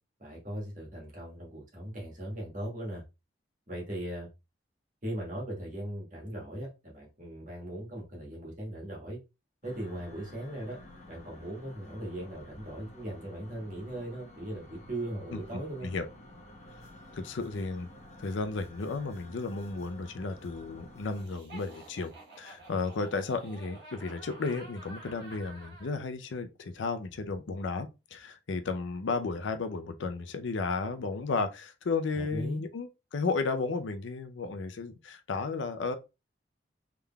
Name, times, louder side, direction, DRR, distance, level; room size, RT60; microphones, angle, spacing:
voice 1, 0.2-3.0 3.7-4.3 5.0-9.2 9.6-10.8 11.1-15.9 32.1-32.6, right 1 dB, 45° right, 1.5 m, -39 dB
sound 1, 9.6-21.2, left 1 dB, 40° left, 0.9 m, -52 dB
voice 2, 17.1-17.9 18.2-36.0, left 4 dB, 85° left, 0.5 m, -33 dB
Laughter, 21.1-25.9, right 2 dB, 65° right, 1.2 m, -50 dB
3.7 x 3.3 x 2.2 m
head